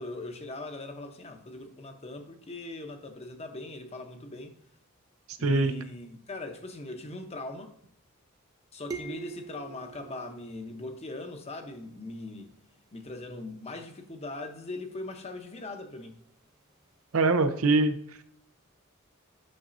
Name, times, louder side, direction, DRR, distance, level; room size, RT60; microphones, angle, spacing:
voice 1, 0.0-4.5 5.4-7.7 8.7-12.5 12.9-16.2, left 2 dB, 30° left, 0.9 m, -40 dB
voice 2, 5.4-5.7 17.1-18.2, right 3 dB, 80° right, 0.7 m, -24 dB
sound 1, 8.9-11.5, right 4 dB, 20° right, 0.7 m, -43 dB
8.7 x 6.1 x 2.6 m
head